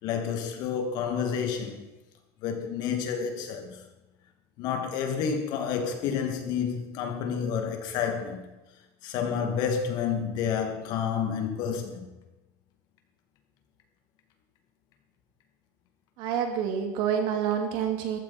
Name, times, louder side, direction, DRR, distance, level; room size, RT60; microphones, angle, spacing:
voice 1, 0.0-1.9 2.4-3.8 4.6-8.5 9.0-12.1, left 7 dB, 50° left, 2.5 m, -30 dB
voice 2, 16.2-18.2, right 8 dB, 55° right, 2.6 m, -28 dB
14.5 x 14.0 x 4.5 m
supercardioid pair, 150°, 9 cm